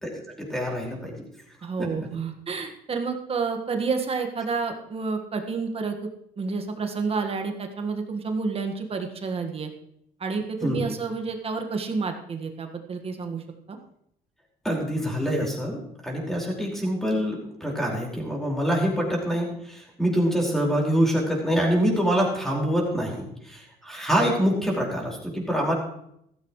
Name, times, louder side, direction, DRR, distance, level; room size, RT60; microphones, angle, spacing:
voice 1, 0.0-1.1 1.8-1.9 10.6-10.9 14.6-25.7, equal, ahead, -2 dB, 5.0 m, -25 dB
voice 2, 1.6-6.1 6.4-9.7 10.2-13.4 13.7-13.8, right 4 dB, 35° right, 5 dB, 1.6 m, -29 dB
14.5 x 14.5 x 3.2 m, 0.73 s
cardioid pair, 110°, 17 cm